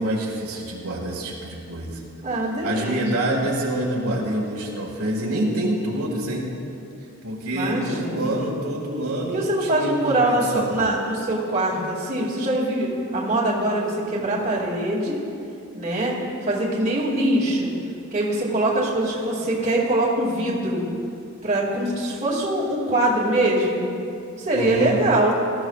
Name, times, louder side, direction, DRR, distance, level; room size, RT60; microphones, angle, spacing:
voice 1, 0.0-2.0 2.6-6.5 7.2-10.8 24.5-25.0, right 1 dB, 80° right, -3 dB, 1.9 m, -26 dB
voice 2, 2.2-3.2 7.5-8.3 9.3-15.2 15.7-16.2 16.5-17.8 18.1-20.9 21.4-23.9 24.4-25.4, right 1 dB, 35° right, -5 dB, 2.3 m, -23 dB
19.0 x 13.5 x 2.4 m, 2.6 s
head